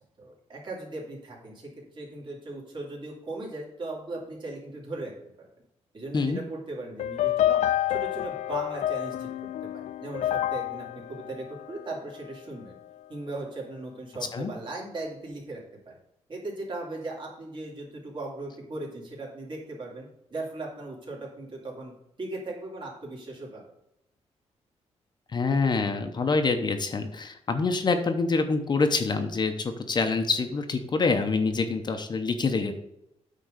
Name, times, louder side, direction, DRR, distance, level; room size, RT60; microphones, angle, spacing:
voice 1, 0.2-5.1 5.4-5.5 5.9-7.6 7.9-9.3 9.6-12.7 13.1-15.6 15.9-16.0 16.3-23.6, right 2 dB, 45° right, -3 dB, 2.8 m, -38 dB
sound 1, 7.0-12.3, left 12 dB, 80° left, 0.4 m, -29 dB
voice 2, 25.3-32.7, left 4 dB, 40° left, 7 dB, 0.9 m, -26 dB
9.2 x 3.8 x 6.7 m, 0.82 s
cardioid pair, 125°, 12 cm